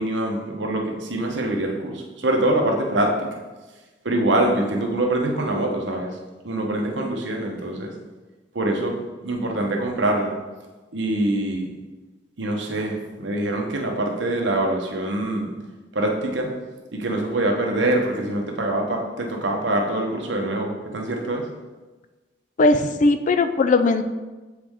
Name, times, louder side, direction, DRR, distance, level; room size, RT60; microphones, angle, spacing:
voice 1, 0.0-3.1 4.0-6.1 6.4-7.9 8.5-8.9 9.2-10.3 10.9-11.7 12.4-15.5 15.9-16.5 16.9-21.4, right 1 dB, 75° right, 1 dB, 1.0 m, -24 dB
voice 2, 22.6-24.0, left 3 dB, 40° left, 9 dB, 0.4 m, -18 dB
7.4 x 4.8 x 3.6 m, 1.2 s
head